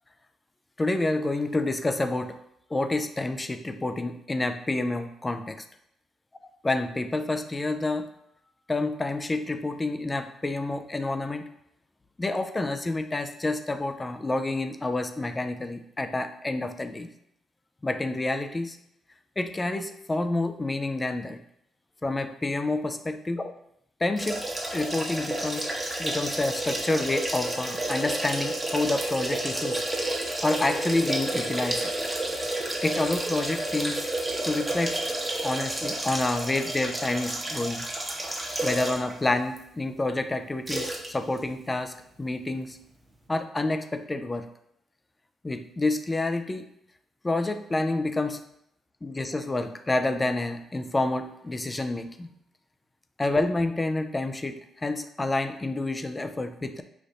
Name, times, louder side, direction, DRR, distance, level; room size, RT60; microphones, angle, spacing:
voice 1, 0.8-2.4 2.7-5.6 6.6-8.1 8.7-11.5 12.2-17.1 17.8-18.8 19.4-21.4 22.0-23.5 24.0-24.4 24.7-25.7 26.0-29.8 30.4-31.9 32.8-34.1 34.4-35.0 35.4-37.8 38.6-42.8 43.3-44.5 45.4-46.7 47.2-48.4 49.0-52.3 53.2-56.8, left 2 dB, 20° left, 9 dB, 0.4 m, -28 dB
sound 1, 24.2-39.1 39.6-39.7 40.7-41.1 41.4-41.5, right 1 dB, 15° right, 1.0 m, -30 dB
5.1 x 2.6 x 4.0 m, 0.76 s
cardioid pair, 90°, 0 cm